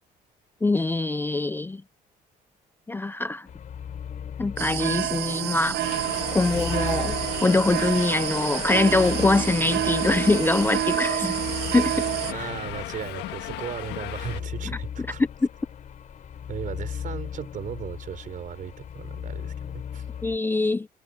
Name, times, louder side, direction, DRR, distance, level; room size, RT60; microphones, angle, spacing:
voice 1, 0.6-1.8 2.9-3.5 4.4-5.8 6.3-11.4 11.7-12.1 12.4-12.5 20.2-20.9, left 2 dB, 10° left, 0.5 m, -23 dB
sound 1, 3.5-20.4, left 8 dB, 50° left, 4.3 m, -37 dB
sound 2, 4.6-12.3, right 14 dB, 75° right, 1.0 m, -28 dB
Subway metro underground, 5.8-14.4, left 16 dB, 90° left, 1.7 m, -36 dB
voice 2, 12.3-15.2 16.5-20.1, right 9 dB, 50° right, 5.8 m, -36 dB
cardioid pair, 110°, 17 cm